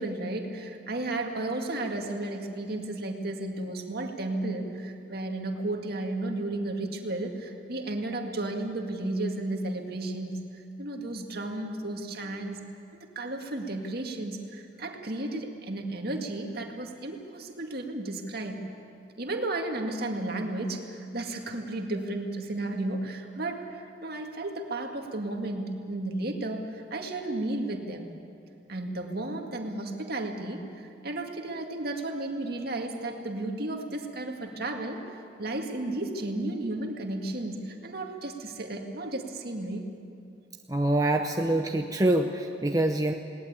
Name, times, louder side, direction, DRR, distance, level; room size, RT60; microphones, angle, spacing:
voice 1, 0.0-12.6 12.9-18.6 19.2-28.1 28.7-39.9, right 2 dB, 55° right, 3 dB, 2.1 m, -33 dB
voice 2, 40.7-43.1, right 1 dB, 20° right, 3 dB, 0.7 m, -25 dB
20.5 x 18.5 x 8.8 m, 2.6 s
head